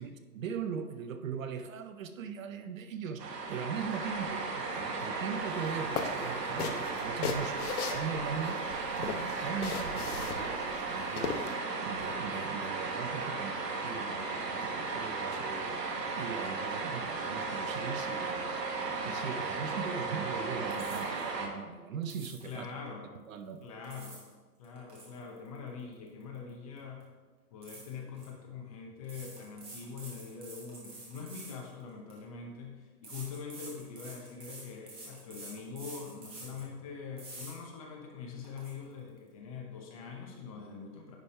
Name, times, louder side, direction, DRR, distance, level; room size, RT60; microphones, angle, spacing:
voice 1, 0.0-11.5 11.8-15.8 16.2-18.5 19.0-22.8 23.3-23.6, right 6 dB, 55° right, 9 dB, 0.6 m, -40 dB
sound 1, 3.2-21.5, right 3 dB, 85° right, 1.4 m, -35 dB
sound 2, 5.6-5.7 6.0-8.6 9.0-11.5, left 6 dB, 70° left, 0.9 m, -37 dB
sound 3, 20.7-21.3 22.0-22.6 23.6-24.3 24.6-26.5 26.8-27.0 27.6-28.3 29.0-32.2 33.0-36.7 37.2-37.5 38.0-38.1 38.4-38.7, right 2 dB, 10° right, 1.0 m, -48 dB
voice 2, 22.4-23.0 23.6-24.2 24.6-27.1 27.5-41.2, left 5 dB, 25° left, 1 dB, 0.7 m, -43 dB
10.0 x 3.4 x 4.2 m, 1.4 s
hypercardioid pair, 155°, 47 cm